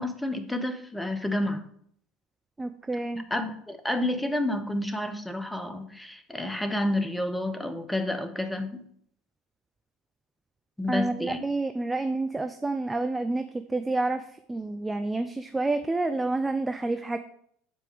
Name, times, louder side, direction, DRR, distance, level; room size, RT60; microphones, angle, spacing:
voice 1, 0.0-1.6 3.3-8.8 10.8-11.4, left 1 dB, 5° left, 7 dB, 1.1 m, -30 dB
voice 2, 2.6-3.3 10.9-13.4 13.7-17.2, right 2 dB, 15° right, 8 dB, 0.5 m, -29 dB
7.9 x 4.5 x 5.1 m, 0.64 s
hypercardioid pair, 70°, 0 cm